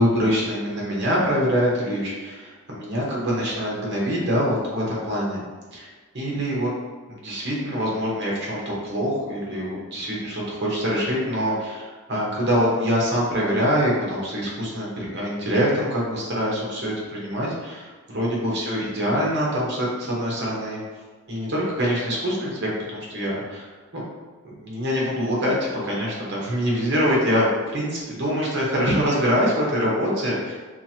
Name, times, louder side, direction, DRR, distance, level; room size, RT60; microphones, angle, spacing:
voice 1, 0.0-5.4 5.7-5.9 6.1-6.7 7.2-20.8 21.3-23.7 23.9-24.0 24.6-25.5 25.8-27.5 27.7-30.5, equal, 55° right, -4 dB, 0.9 m, -24 dB
2.9 x 2.4 x 2.7 m, 1.4 s
head